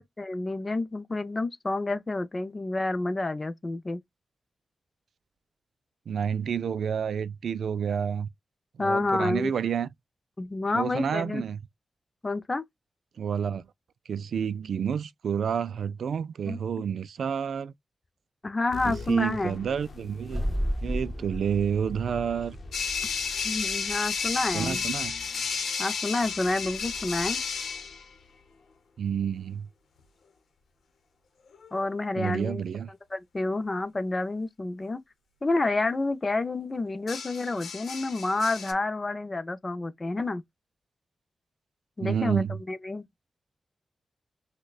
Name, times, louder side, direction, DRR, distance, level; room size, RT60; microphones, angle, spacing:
voice 1, 0.2-4.0 8.8-9.5 10.4-11.4 12.2-12.6 16.5-16.6 18.4-19.6 23.4-24.8 25.8-27.4 31.7-32.6 33.1-35.0 35.4-40.4 42.0-43.1, left 2 dB, 25° left, 0.5 m, -29 dB
voice 2, 6.1-8.3 8.8-9.9 10.7-11.6 13.2-13.6 14.1-17.7 18.9-20.4 20.8-22.6 24.5-25.1 29.0-29.7 32.2-32.9 42.0-42.6, right 7 dB, 80° right, 0.3 m, -29 dB
sound 1, 18.7-29.6, left 3 dB, 55° left, 0.8 m, -47 dB
sound 2, 20.2-24.5, equal, 5° left, 2.0 m, -34 dB
sound 3, 22.7-28.0 31.5-31.9 37.1-38.7, left 5 dB, 90° left, 0.8 m, -32 dB
6.2 x 2.2 x 2.3 m
wide cardioid pair, 130°, 0 cm